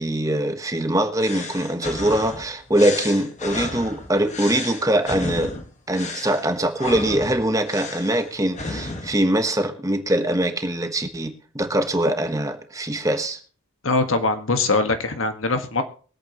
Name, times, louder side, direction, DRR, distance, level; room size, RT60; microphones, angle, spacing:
voice 1, 0.0-5.5 5.9-13.4, right 1 dB, 15° right, 7 dB, 1.1 m, -23 dB
sound 1, 1.2-9.2, left 2 dB, 35° left, 1.6 m, -33 dB
voice 2, 13.8-15.8, left 3 dB, 80° left, 7 dB, 1.6 m, -22 dB
23.0 x 8.5 x 3.0 m, 0.41 s
head